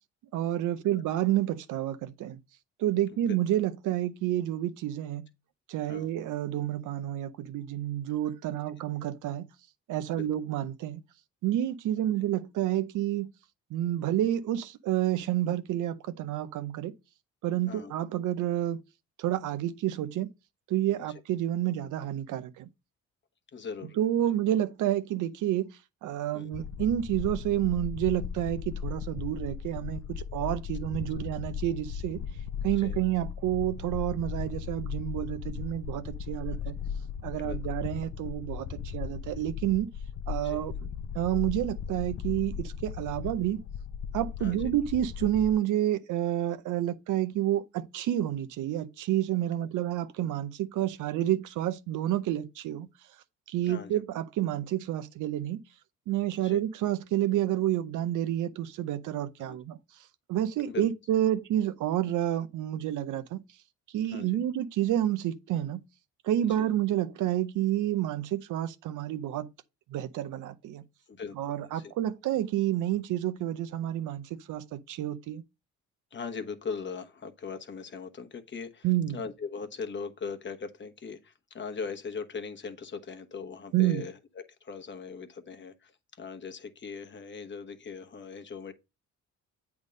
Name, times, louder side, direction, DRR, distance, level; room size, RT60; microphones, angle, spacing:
voice 1, 0.3-2.4 2.8-5.2 5.7-9.5 9.9-11.0 11.4-13.3 13.7-16.9 17.4-18.8 19.2-20.3 20.7-22.7 24.0-25.7 26.0-32.2 32.6-36.8 37.2-39.9 40.3-40.9 41.1-43.6 44.1-52.9 53.5-55.6 56.1-59.8 60.3-63.4 63.9-65.8 66.2-69.5 69.9-70.8 71.4-75.4 78.8-79.2 83.7-84.0, right 12 dB, 80° right, 0.7 m, -29 dB
voice 2, 23.5-24.0 24.2-24.3 26.3-26.5 32.8-33.0 36.5-36.6 37.4-37.7 40.4-40.8 44.4-44.7 53.7-54.0 56.4-56.6 59.4-59.6 60.7-60.9 64.1-64.4 66.4-66.7 71.1-71.9 76.1-78.9 79.1-88.7, left 5 dB, 40° left, 1.1 m, -40 dB
sound 1, 26.5-45.5, left 7 dB, 55° left, 0.6 m, -37 dB
8.2 x 3.6 x 5.2 m
cardioid pair, 90°, 30 cm